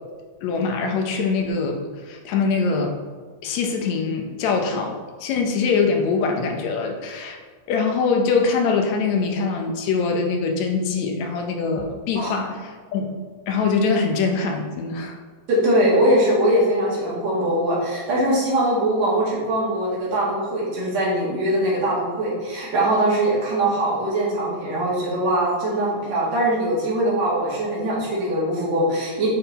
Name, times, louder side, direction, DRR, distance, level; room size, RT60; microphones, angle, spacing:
voice 1, 0.4-1.8 2.1-3.0 3.4-4.9 5.2-7.4 7.7-13.1 13.5-15.2, left 4 dB, 75° left, 3 dB, 1.8 m, -23 dB
voice 2, 12.2-12.5 15.5-29.3, right 1 dB, 60° right, -6 dB, 3.1 m, -22 dB
7.8 x 4.3 x 4.0 m, 1.6 s
omnidirectional pair, 3.7 m